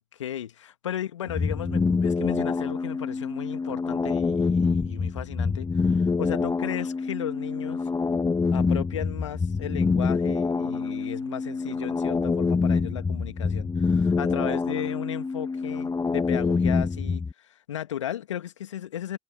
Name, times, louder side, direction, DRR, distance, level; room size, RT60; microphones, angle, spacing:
voice 1, 0.2-7.9 8.5-19.2, left 11 dB, 80° left, 2.1 m, -35 dB
sound 1, 1.3-17.3, left 4 dB, 25° left, 2.2 m, -26 dB
figure-of-eight pair, 55°, 15 cm